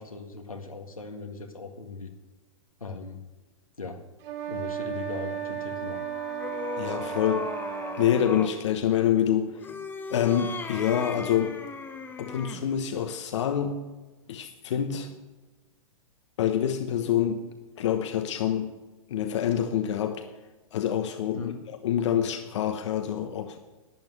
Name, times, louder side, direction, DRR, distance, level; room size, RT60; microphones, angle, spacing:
voice 1, 0.0-2.1 2.8-3.2 3.8-4.0 4.4-6.0 21.3-21.6, left 4 dB, 85° left, 1.8 m, -38 dB
sound 1, 4.2-8.2, right 9 dB, 50° right, 3.0 m, -34 dB
sound 2, 5.6-8.6 9.5-12.7, left 4 dB, 10° left, 1.1 m, -38 dB
voice 2, 6.8-7.5 8.0-9.6 10.1-11.6 12.2-13.8 14.3-15.1 16.4-17.5 17.8-18.7 19.1-20.3 20.7-21.5 21.8-23.6, left 9 dB, 55° left, 1.1 m, -26 dB
12.0 x 9.1 x 8.0 m
figure-of-eight pair, 115°, 17 cm